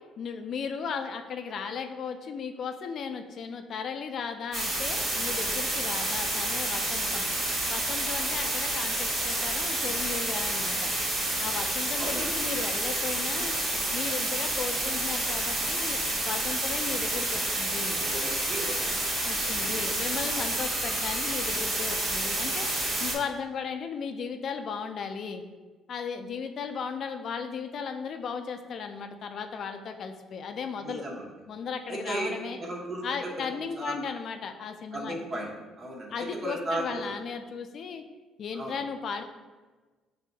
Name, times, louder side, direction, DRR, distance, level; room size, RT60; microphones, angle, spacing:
voice 1, 0.2-7.3 7.7-10.9 11.4-13.6 13.9-18.0 19.3-22.7 23.0-25.4 25.9-31.1 31.5-32.6 33.0-35.2 36.1-38.0 38.4-39.2, left 6 dB, 55° left, 7 dB, 0.4 m, -36 dB
sound 1, 4.5-23.1, right 1 dB, 55° right, 1.3 m, -29 dB
voice 2, 17.9-19.1 19.4-19.9 30.8-31.3 31.9-32.3 32.6-33.9 34.9-35.5 35.8-37.1 38.5-38.8, right 1 dB, 40° right, -1 dB, 0.9 m, -36 dB
5.8 x 2.7 x 2.2 m, 1.3 s
cardioid pair, 95°, 0 cm